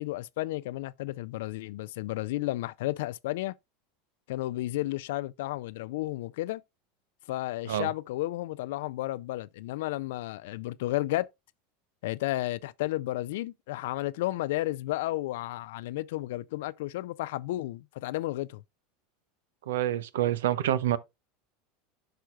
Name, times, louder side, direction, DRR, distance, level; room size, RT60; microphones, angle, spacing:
voice 1, 0.0-3.5 4.3-6.6 7.3-11.3 12.0-18.6, left 17 dB, 70° left, 0.4 m, -32 dB
voice 2, 19.7-21.0, right 12 dB, 75° right, 0.7 m, -27 dB
11.5 x 4.5 x 2.4 m
hypercardioid pair, 85°, 0 cm